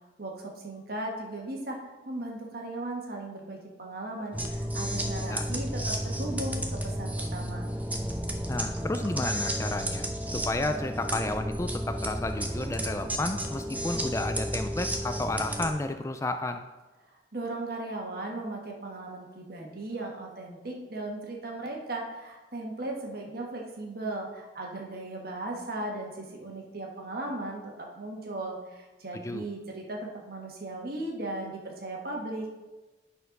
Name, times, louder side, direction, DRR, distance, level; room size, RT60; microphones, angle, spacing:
voice 1, 0.2-1.8 2.0-7.7 17.1-32.5, right 2 dB, 55° right, 0 dB, 1.6 m, -37 dB
sound 1, 4.3-15.7, right 1 dB, 10° right, 0.8 m, -32 dB
voice 2, 8.5-10.1 10.3-16.7 29.2-29.5, left 2 dB, 15° left, 7 dB, 0.3 m, -32 dB
9.1 x 4.3 x 5.3 m, 1.1 s
head